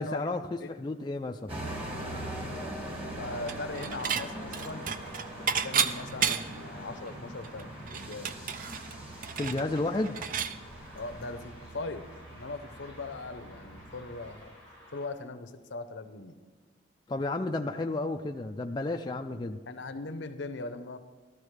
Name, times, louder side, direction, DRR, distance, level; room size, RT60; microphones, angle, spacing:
voice 1, 0.0-1.6 9.4-10.2 17.1-19.6, left 2 dB, 20° left, 4 dB, 0.3 m, -32 dB
sound 1, 1.5-14.3, right 1 dB, 30° right, 1.9 m, -42 dB
voice 2, 3.2-4.8 5.4-8.5 10.9-12.1 12.3-14.5 14.9-16.4 19.7-21.0, left 3 dB, 65° left, 10 dB, 0.7 m, -40 dB
sound 2, 3.2-15.1, equal, 80° right, 3.2 m, -51 dB
Dishes pots and pans / Chink clink, 3.5-4.3 4.5-6.7 7.1-7.2 7.4-10.6, right 7 dB, 45° right, 0.4 m, -31 dB
13.5 x 13.0 x 3.3 m, 1.3 s
head